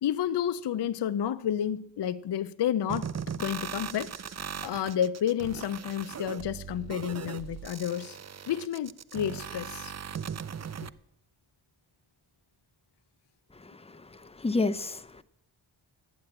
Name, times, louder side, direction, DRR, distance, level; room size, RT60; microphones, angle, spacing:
voice 1, 0.0-8.2 8.5-9.9 10.8-10.9, left 10 dB, 60° left, 0.5 m, -31 dB
sound 1, 2.9-10.9, right 7 dB, 35° right, 0.4 m, -39 dB
voice 2, 13.5-15.2, left 3 dB, 15° left, 0.6 m, -31 dB
11.5 x 8.7 x 8.6 m
wide cardioid pair, 95°, 47 cm